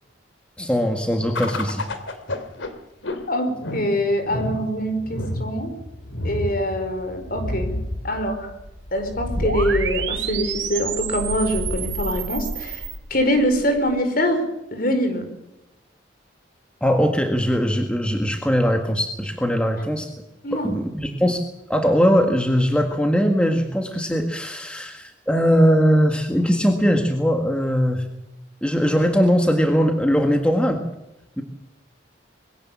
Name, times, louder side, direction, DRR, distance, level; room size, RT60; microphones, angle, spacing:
voice 1, 0.6-1.8 16.8-20.1 20.5-21.4 21.7-28.1 28.6-30.8 31.4-31.5, equal, 5° left, 4 dB, 1.8 m, -20 dB
sound 1, 1.3-14.0, left 1 dB, 85° left, 2.9 m, -31 dB
voice 2, 3.3-5.7 6.2-8.5 8.9-12.8 13.1-14.4 14.7-15.3 20.4-20.8, equal, 50° left, 7 dB, 4.8 m, -24 dB
sound 2, 9.3-12.9, right 8 dB, 80° right, 3.5 m, -30 dB
22.5 x 16.5 x 7.3 m, 0.90 s
head